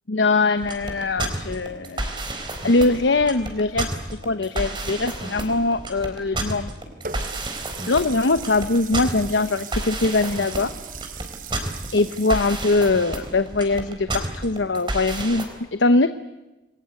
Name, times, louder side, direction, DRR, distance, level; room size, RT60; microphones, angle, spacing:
voice 1, 0.1-2.0 2.6-3.9 4.2-6.7 7.9-10.7 11.9-16.1, left 3 dB, 85° left, 11 dB, 1.0 m, -22 dB
sound 1, 0.6-15.4, right 2 dB, 25° right, 4.1 m, -30 dB
Water tap faucet, 7.0-12.8, right 7 dB, 45° right, 1.1 m, -39 dB
28.5 x 21.5 x 8.3 m, 1.0 s
head